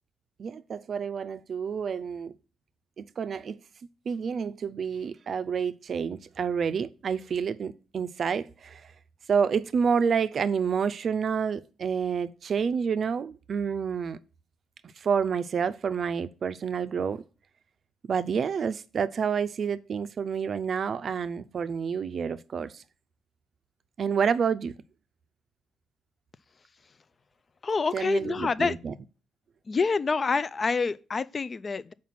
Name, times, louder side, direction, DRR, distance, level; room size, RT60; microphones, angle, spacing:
voice 1, 0.4-2.3 3.0-3.6 4.1-8.9 9.3-14.2 15.0-17.2 18.0-22.8 24.0-24.7 27.9-28.9, right 6 dB, 50° right, 0.4 m, -29 dB
voice 2, 27.6-28.7 29.7-31.9, left 4 dB, 35° left, 0.3 m, -27 dB
5.7 x 4.6 x 5.9 m
cardioid pair, 90°, 0 cm